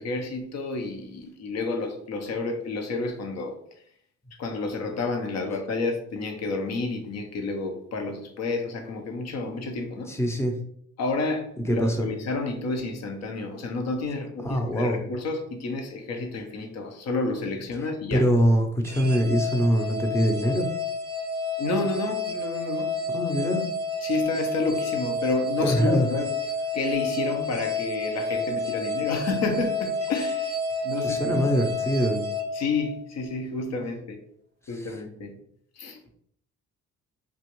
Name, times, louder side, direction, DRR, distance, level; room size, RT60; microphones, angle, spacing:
voice 1, 0.0-3.6 4.4-10.1 11.0-18.3 21.6-22.9 24.0-26.3 26.7-30.6 30.8-31.4 32.5-34.2 34.7-35.3 35.8-36.1, left 3 dB, 60° left, 0.8 m, -30 dB
voice 2, 10.1-10.6 11.7-12.1 14.4-15.0 17.8-20.7 23.1-23.7 25.6-26.1 31.0-32.2 34.7-35.0, equal, 10° left, 0.7 m, -24 dB
sound 1, 18.9-33.2, left 2 dB, 35° right, 0.4 m, -30 dB
3.5 x 2.4 x 3.0 m
cardioid pair, 90°, 30 cm